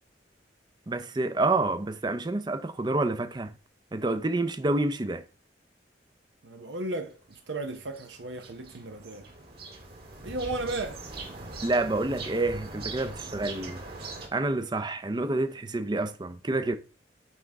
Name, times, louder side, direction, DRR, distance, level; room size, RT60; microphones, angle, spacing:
voice 1, 0.9-3.5 3.9-5.2 11.6-13.8 14.3-16.8, right 2 dB, 25° right, 0.5 m, -28 dB
voice 2, 6.4-9.3 10.2-11.0, right 2 dB, 85° right, 0.8 m, -35 dB
sound 1, 7.3-14.3, right 3 dB, 60° right, 2.1 m, -41 dB
9.2 x 3.6 x 3.4 m
head